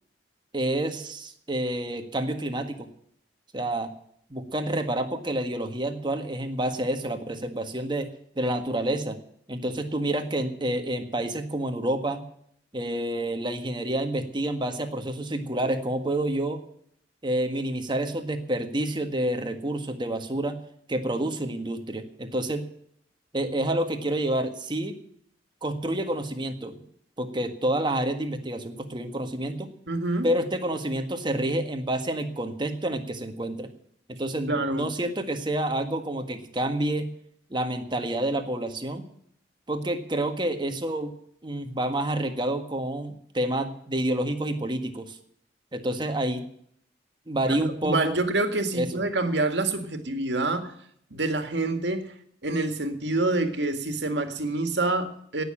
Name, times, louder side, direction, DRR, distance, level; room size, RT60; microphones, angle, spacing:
voice 1, 0.5-2.9 3.5-3.9 4.3-8.1 8.3-9.2 9.5-12.2 12.7-16.6 17.2-20.6 20.9-22.6 23.3-25.0 25.6-26.8 27.2-29.7 30.2-33.7 34.1-37.1 37.5-39.0 39.7-41.1 41.4-45.2 45.7-46.4 47.3-48.1 48.7-48.9, right 1 dB, 25° right, 6 dB, 1.7 m, -28 dB
voice 2, 29.9-30.3 34.5-34.9 47.5-50.7 51.1-52.1 52.4-55.4, right 2 dB, 70° right, 7 dB, 2.0 m, -27 dB
17.5 x 6.9 x 8.9 m, 0.68 s
head